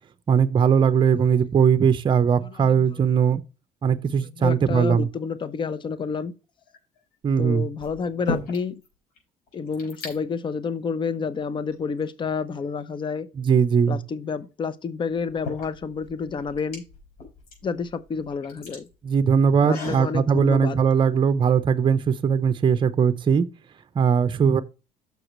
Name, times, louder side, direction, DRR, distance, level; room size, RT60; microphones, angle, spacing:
voice 1, 0.3-3.4 3.8-5.1 7.2-7.7 13.4-14.0 19.0-23.4 24.0-24.6, right 7 dB, 35° right, 0.6 m, -20 dB
voice 2, 2.4-3.0 4.2-6.3 7.4-8.8 9.5-13.3 13.9-16.8 17.6-18.9 19.6-20.8, left 5 dB, 35° left, 0.7 m, -29 dB
sound 1, 6.6-7.0 7.8-8.9 9.2-9.3 9.5-10.2 11.0-11.1 11.7-12.6 14.3-14.4 15.1-20.1, left 3 dB, 85° left, 4.6 m, -37 dB
6.7 x 4.9 x 6.0 m
cardioid pair, 90°, 15 cm